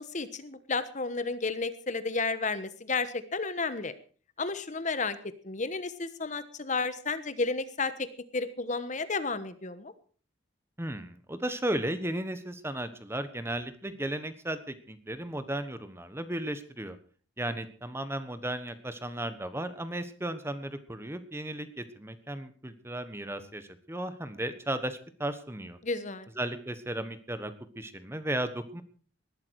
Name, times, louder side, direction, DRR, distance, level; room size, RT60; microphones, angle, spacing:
voice 1, 0.0-3.9 4.4-5.2 5.4-8.1 8.3-9.9 25.8-26.3, left 4 dB, 40° left, 12 dB, 1.2 m, -32 dB
voice 2, 10.8-17.0 17.4-25.8 26.4-28.8, right 1 dB, 15° right, 11 dB, 1.2 m, -35 dB
19.0 x 12.5 x 4.7 m, 0.42 s
head